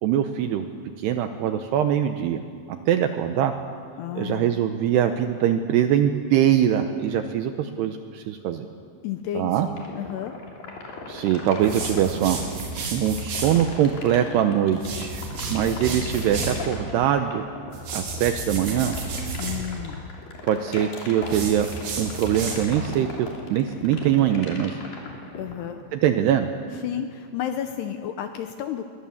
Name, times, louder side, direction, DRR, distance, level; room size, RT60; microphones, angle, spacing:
voice 1, 0.0-0.7 1.0-2.4 2.9-3.5 4.2-8.7 9.4-9.7 11.1-12.4 12.9-15.2 15.5-17.4 17.9-19.0 20.5-21.7 22.0-24.7 25.9-26.5, right 10 dB, 80° right, 7 dB, 2.5 m, -22 dB
voice 2, 4.0-4.5 9.0-10.3 19.4-20.0 25.4-25.8 26.7-28.8, left 10 dB, 80° left, 7 dB, 2.5 m, -32 dB
sound 1, 9.8-25.7, left 4 dB, 50° left, 4.2 m, -38 dB
sound 2, 11.6-13.6 14.7-16.6 17.7-19.6 21.2-22.8, right 3 dB, 65° right, 5.2 m, -32 dB
23.0 x 20.5 x 7.2 m, 2.2 s
omnidirectional pair, 5.5 m